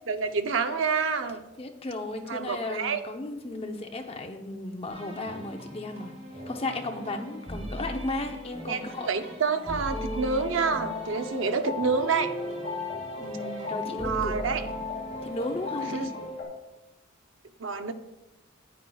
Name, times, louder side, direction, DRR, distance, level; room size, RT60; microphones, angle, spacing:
voice 1, 0.1-1.4 2.3-3.0 8.7-12.3 14.0-14.6 15.8-16.1 17.6-17.9, right 5 dB, 75° right, 8 dB, 0.6 m, -28 dB
voice 2, 1.6-6.1 6.5-9.1 13.2-14.3 15.2-16.0, left 2 dB, 30° left, 4 dB, 0.7 m, -34 dB
sound 1, 4.9-16.4, equal, 35° right, 2.9 m, -41 dB
sound 2, 9.8-16.4, left 3 dB, 60° left, 2.5 m, -35 dB
10.0 x 9.2 x 2.3 m, 1.0 s
head